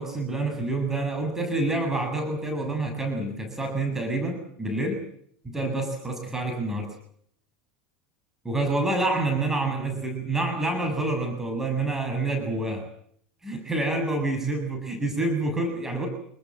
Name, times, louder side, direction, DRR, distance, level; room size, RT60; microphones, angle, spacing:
voice 1, 0.0-5.0 5.4-6.9 8.4-12.8 13.4-16.1, right 2 dB, 10° right, 5 dB, 7.5 m, -27 dB
28.0 x 20.5 x 7.5 m, 0.65 s
figure-of-eight pair, 80°, 4 cm